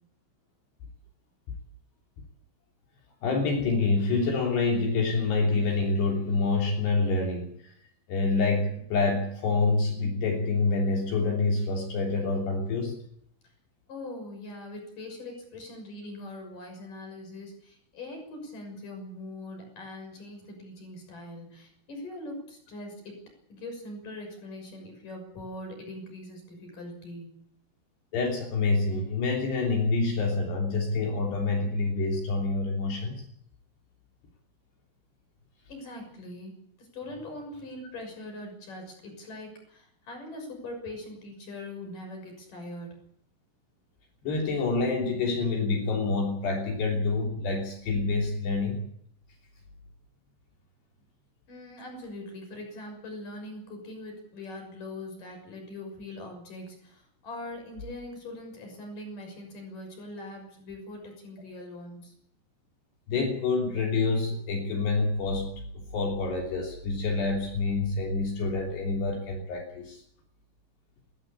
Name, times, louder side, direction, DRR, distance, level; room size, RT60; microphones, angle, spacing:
voice 1, 3.2-7.7 8.1-12.9 28.1-33.2 44.2-48.8 63.1-65.5 65.7-70.0, left 3 dB, 60° left, 1 dB, 5.1 m, -27 dB
voice 2, 13.9-23.2 23.5-27.4 35.7-43.0 51.5-62.1, left 1 dB, 45° left, 4 dB, 7.7 m, -42 dB
21.5 x 15.0 x 8.7 m, 0.67 s
omnidirectional pair, 5.6 m